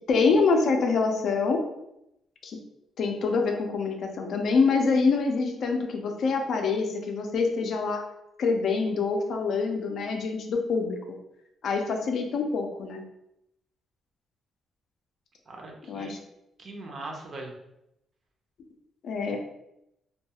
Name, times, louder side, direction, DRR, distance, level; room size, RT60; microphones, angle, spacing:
voice 1, 0.1-1.6 2.4-2.6 3.0-8.0 8.4-11.0 11.6-13.0 15.9-16.2 19.0-19.4, left 4 dB, 60° left, 3 dB, 0.4 m, -25 dB
voice 2, 15.5-16.2 16.6-17.5 19.3-19.4, right 2 dB, 40° right, 1 dB, 0.5 m, -40 dB
2.3 x 2.2 x 2.8 m, 0.83 s
cardioid pair, 140°, 0 cm